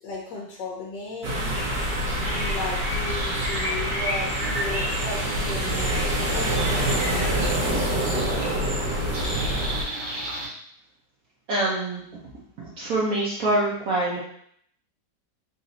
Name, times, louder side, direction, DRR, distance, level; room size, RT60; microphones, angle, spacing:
voice 1, 0.0-1.6 2.2-7.2 7.6-8.5, left 3 dB, 80° left, -3 dB, 1.4 m, -36 dB
sound 1, 1.2-9.8, right 1 dB, 75° right, 1.6 m, -26 dB
sound 2, 1.5-10.5, equal, 35° right, 0.9 m, -33 dB
voice 2, 11.5-12.0 12.6-14.2, right 1 dB, 60° right, -6 dB, 1.1 m, -25 dB
4.1 x 2.6 x 3.9 m, 0.66 s
omnidirectional pair, 1.9 m